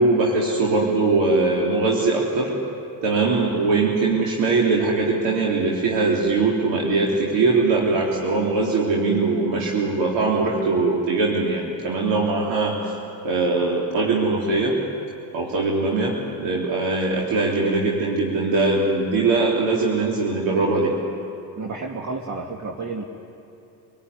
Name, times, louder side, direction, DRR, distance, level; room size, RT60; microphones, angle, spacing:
voice 1, 0.0-2.5 3.0-12.9 13.2-14.8 15.3-20.9, right 3 dB, 65° right, -3 dB, 3.7 m, -21 dB
voice 2, 21.6-23.0, right 3 dB, 35° right, 1 dB, 2.2 m, -31 dB
27.0 x 17.5 x 9.7 m, 2.7 s
hypercardioid pair, 70°, 47 cm